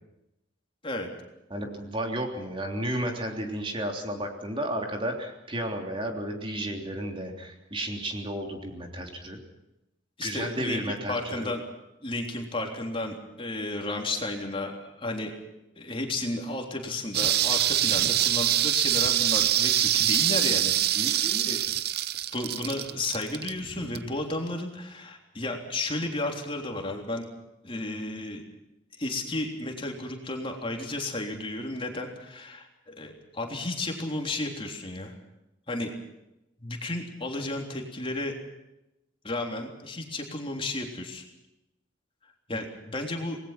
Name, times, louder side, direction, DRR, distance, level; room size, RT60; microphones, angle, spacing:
voice 1, 1.5-9.4 10.2-11.5 20.9-21.5 42.5-42.6, right 1 dB, 30° right, 3 dB, 3.3 m, -33 dB
voice 2, 10.2-10.8 11.1-11.6 12.0-15.3 15.8-21.6 22.3-27.3 27.6-28.4 28.9-35.1 35.7-35.9 36.6-38.3 39.2-41.2 42.5-43.4, left 2 dB, 30° left, 2 dB, 3.5 m, -33 dB
sound 1, 17.1-24.2 24.5-24.6, right 11 dB, 55° right, 0.7 m, -25 dB
27.5 x 20.0 x 6.0 m, 0.90 s
head